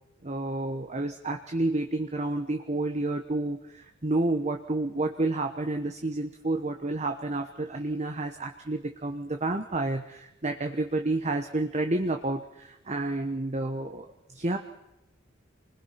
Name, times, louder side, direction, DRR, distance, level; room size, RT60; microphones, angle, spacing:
voice 1, 0.2-14.1 14.3-14.6, right 2 dB, 35° right, 4 dB, 1.2 m, -30 dB
28.5 x 21.0 x 5.9 m, 0.90 s
head